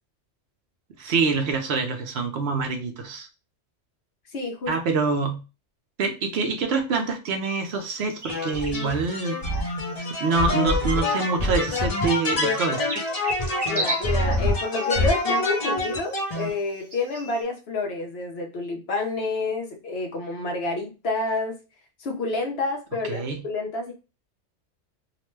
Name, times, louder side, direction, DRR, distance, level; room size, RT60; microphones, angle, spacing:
voice 1, 1.0-3.3 4.7-5.4 6.0-9.4 10.2-12.9 23.0-23.4, right 4 dB, 60° right, 5 dB, 0.8 m, -25 dB
voice 2, 4.3-4.7 13.6-21.6 22.0-23.9, left 3 dB, 60° left, 2 dB, 0.9 m, -29 dB
sound 1, 7.4-17.4, right 1 dB, 35° right, 0.4 m, -38 dB
sound 2, 8.3-16.5, left 2 dB, 40° left, 0.6 m, -26 dB
2.9 x 2.1 x 3.1 m, 0.30 s
omnidirectional pair, 1.3 m